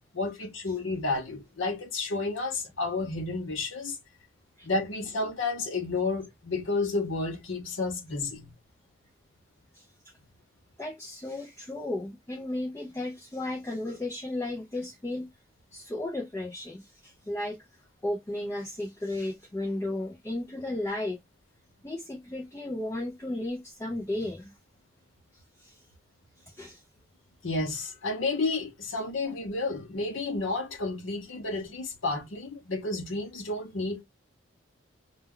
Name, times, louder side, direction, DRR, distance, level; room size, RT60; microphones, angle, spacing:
voice 1, 0.1-4.0 4.6-8.5 27.4-34.0, left 3 dB, 65° left, 0.7 m, -31 dB
voice 2, 10.8-15.3 15.7-17.6 18.0-21.2 21.8-24.5 25.3-25.9 26.4-26.8, left 1 dB, 15° left, 0.3 m, -34 dB
2.2 x 2.1 x 3.6 m
head